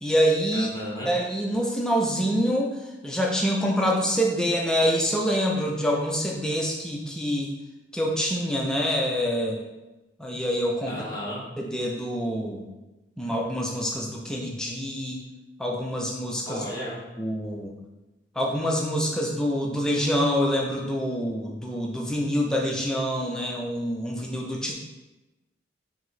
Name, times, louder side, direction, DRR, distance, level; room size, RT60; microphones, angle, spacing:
voice 1, 0.0-0.7 1.0-2.7 3.0-7.5 7.9-9.6 10.2-11.0 11.6-12.6 13.2-15.2 15.6-16.6 17.2-17.7 18.4-24.7, equal, 5° left, -1 dB, 0.4 m, -26 dB
voice 2, 0.5-1.1 10.9-11.5 16.5-17.0, left 1 dB, 20° left, -5 dB, 0.9 m, -34 dB
4.7 x 2.0 x 3.9 m, 1.0 s
head